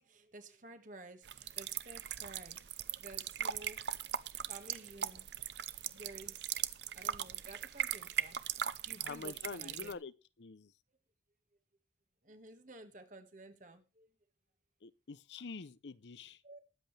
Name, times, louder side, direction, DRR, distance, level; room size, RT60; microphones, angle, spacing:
voice 1, 0.0-2.6 3.0-5.3 5.9-6.6 6.9-10.0 12.2-14.1 16.4-16.6, right 2 dB, 45° right, 1.8 m, -53 dB
sound 1, 1.2-9.9, right 9 dB, 75° right, 0.7 m, -40 dB
voice 2, 9.0-10.1 10.4-10.7 14.8-16.4, left 4 dB, 75° left, 0.7 m, -46 dB
21.0 x 8.0 x 3.4 m
head